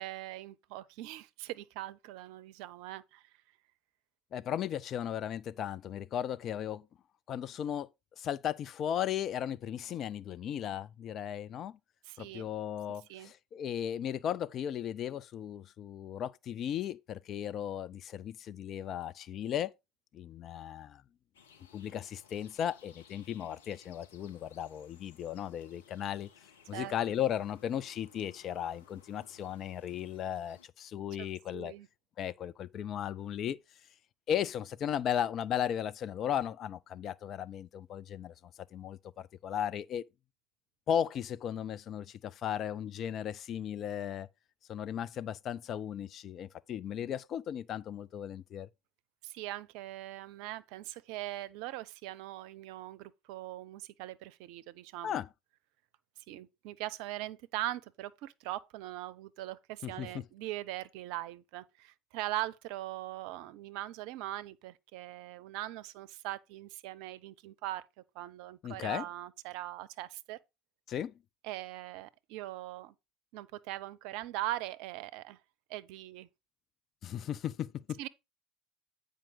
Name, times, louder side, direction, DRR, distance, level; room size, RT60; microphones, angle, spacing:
voice 1, 0.0-3.2 12.0-12.5 13.1-13.3 26.7-26.9 31.2-31.3 31.5-31.9 49.2-55.2 56.3-67.8 68.1-70.4 71.4-72.9 73.3-75.4 75.7-76.3 78.0-78.1, right 15 dB, 60° right, 0.6 m, -41 dB
voice 2, 4.3-6.9 7.3-7.9 8.2-11.8 12.2-19.7 20.1-21.0 21.7-26.3 26.7-31.7 32.2-33.6 34.3-38.3 38.7-40.0 40.9-44.3 44.7-48.7 55.0-55.3 59.8-60.2 68.6-69.0 70.9-71.1 77.0-78.0, left 9 dB, 45° left, 0.5 m, -36 dB
sound 1, 21.3-30.7, left 7 dB, 75° left, 0.8 m, -61 dB
8.9 x 5.1 x 4.0 m
figure-of-eight pair, 65°, 0 cm